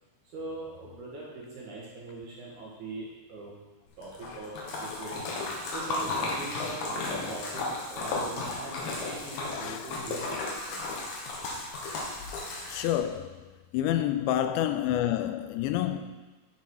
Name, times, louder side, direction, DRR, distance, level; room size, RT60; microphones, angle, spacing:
voice 1, 0.3-3.6 4.0-5.2 5.7-10.8 14.3-14.5 15.9-16.0, right 2 dB, 55° right, 2.5 m, -42 dB
Splash splatter, 4.0-13.1, left 2 dB, 65° left, 3.0 m, -34 dB
voice 2, 12.7-13.4 13.7-16.0, left 12 dB, 90° left, 2.9 m, -28 dB
11.5 x 6.0 x 4.7 m
omnidirectional pair, 5.1 m